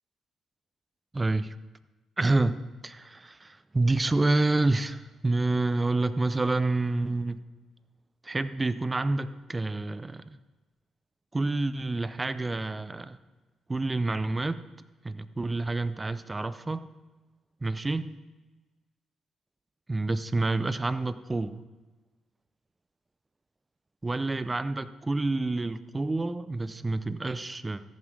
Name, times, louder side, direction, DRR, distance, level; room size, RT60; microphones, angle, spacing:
voice 1, 1.1-1.6 2.2-7.4 8.2-10.4 11.3-13.2 13.7-14.6 15.0-16.9 17.6-18.2 19.9-21.6 24.0-27.8, right 2 dB, 20° right, 14 dB, 0.6 m, -28 dB
14.0 x 7.1 x 5.4 m, 1.2 s
cardioid pair, 90°, 0 cm